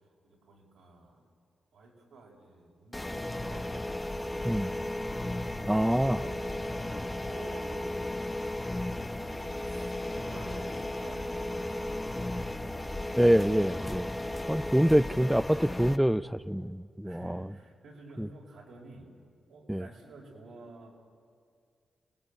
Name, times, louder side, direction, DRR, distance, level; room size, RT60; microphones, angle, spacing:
voice 1, 0.2-1.3 1.7-4.7 5.3-6.9 7.1-8.3 8.7-13.5 14.3-15.1 17.0-19.1 19.5-20.9, right 2 dB, 80° right, -1 dB, 5.4 m, -51 dB
sound 1, 2.9-16.0, left 1 dB, 15° left, 1.3 m, -35 dB
voice 2, 5.7-6.2 13.2-14.1 14.5-17.4 18.2-18.3 19.7-19.8, equal, 5° right, 13 dB, 0.6 m, -25 dB
29.5 x 19.0 x 9.0 m, 2.2 s
supercardioid pair, 45°, 0 cm